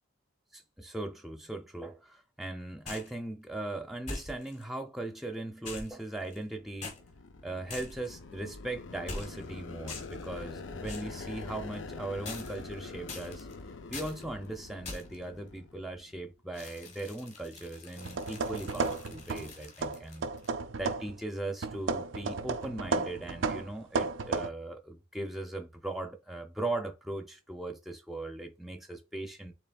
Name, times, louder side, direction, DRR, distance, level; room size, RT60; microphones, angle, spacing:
voice 1, 0.5-7.0 7.4-13.5 13.9-20.3 20.8-29.5, right 2 dB, ahead, 0.6 m, -39 dB
sound 1, 2.9-3.2 4.1-4.6 5.6-6.5 6.8-7.0 7.7-8.1 9.1-9.5 9.9-10.2 10.8-11.2 12.2-12.7 13.1-13.5 13.9-14.2 14.8-15.2 16.5-20.5, left 3 dB, 35° left, 1.5 m, -43 dB
sound 2, 6.5-16.3, left 3 dB, 70° left, 0.6 m, -45 dB
sound 3, 18.0-19.5 19.8-21.2 21.6-24.5, right 4 dB, 75° right, 0.5 m, -33 dB
6.8 x 3.1 x 2.4 m
head